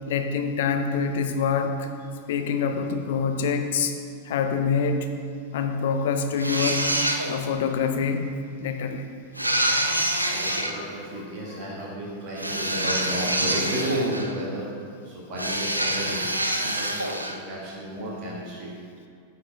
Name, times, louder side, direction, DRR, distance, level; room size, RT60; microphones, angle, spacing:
voice 1, 0.1-1.9 2.3-3.9 4.2-5.1 5.5-6.8 7.3-8.3 8.6-9.1 10.2-10.9, left 6 dB, 55° left, 6 dB, 0.5 m, -26 dB
sound 1, 6.4-7.6 9.4-10.8 12.4-14.4 15.4-17.4, right 1 dB, 85° right, 0.4 m, -26 dB
voice 2, 9.7-14.7 15.0-16.2 16.6-18.7, right 1 dB, 40° right, -5 dB, 1.9 m, -33 dB
9.1 x 5.1 x 3.5 m, 2.3 s
figure-of-eight pair, 90°, 0 cm